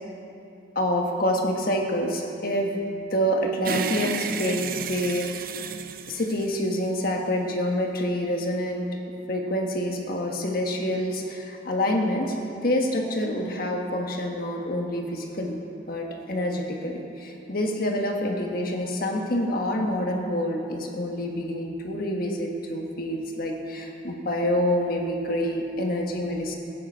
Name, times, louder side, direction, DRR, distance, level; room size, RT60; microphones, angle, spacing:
voice 1, 0.7-5.5 6.1-9.0 9.3-15.6 15.9-26.6, equal, 50° left, 1 dB, 1.5 m, -27 dB
sound 1, 3.6-7.1, right 6 dB, 50° right, 0.6 m, -32 dB
15.5 x 10.5 x 5.6 m, 2.8 s
head